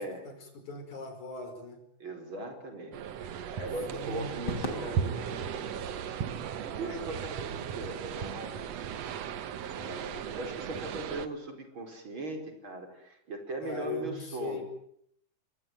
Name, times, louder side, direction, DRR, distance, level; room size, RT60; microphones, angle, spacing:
voice 1, 0.3-1.8 3.9-4.3 13.6-14.6, left 3 dB, 60° left, 7 dB, 6.4 m, -39 dB
voice 2, 2.0-6.0 6.4-8.8 9.7-14.6, right 2 dB, 35° right, 5 dB, 5.4 m, -40 dB
sound 1, 2.9-11.3, right 8 dB, 60° right, 2.1 m, -36 dB
Crowd / Fireworks, 4.5-9.0, left 1 dB, 30° left, 4.2 m, -42 dB
26.0 x 22.0 x 9.2 m, 0.71 s
omnidirectional pair, 3.8 m